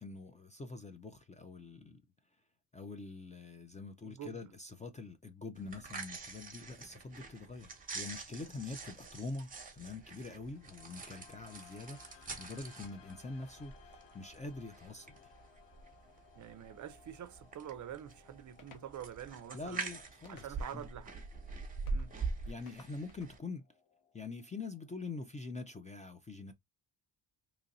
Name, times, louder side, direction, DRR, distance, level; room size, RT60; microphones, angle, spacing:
voice 1, 0.0-2.0 2.7-7.7 7.9-15.1 19.5-20.5 20.7-20.9 22.5-23.6 24.1-26.5, left 3 dB, 20° left, 0.3 m, -45 dB
voice 2, 4.0-4.5 16.4-19.8 20.3-21.1 21.9-22.2, right 10 dB, 45° right, 0.5 m, -46 dB
sound 1, 5.6-23.4, right 4 dB, 20° right, 0.9 m, -45 dB
sound 2, 9.8-25.8, left 7 dB, 80° left, 0.8 m, -63 dB
sound 3, 18.6-18.9 20.2-20.8 21.9-22.1 22.6-23.4, left 5 dB, 50° left, 0.9 m, -59 dB
3.0 x 2.5 x 4.0 m
cardioid pair, 135°, 43 cm